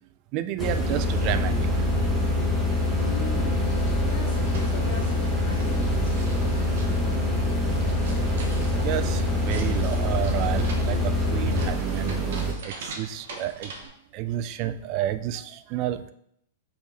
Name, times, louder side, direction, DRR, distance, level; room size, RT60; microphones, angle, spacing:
voice 1, 0.3-1.5 7.8-8.0 8.7-12.2 12.6-13.7 14.1-16.1, right 12 dB, 45° right, 12 dB, 0.3 m, -30 dB
sound 1, 0.6-12.0, left 7 dB, 30° left, 0.6 m, -27 dB
sound 2, 0.6-12.5, right 4 dB, 20° right, 0.9 m, -28 dB
voice 2, 3.0-7.2, left 4 dB, 80° left, 0 dB, 1.5 m, -40 dB
sound 3, 3.6-13.9, right 2 dB, 75° right, 1.0 m, -41 dB
5.5 x 2.7 x 3.6 m, 0.71 s
hypercardioid pair, 125°, 0 cm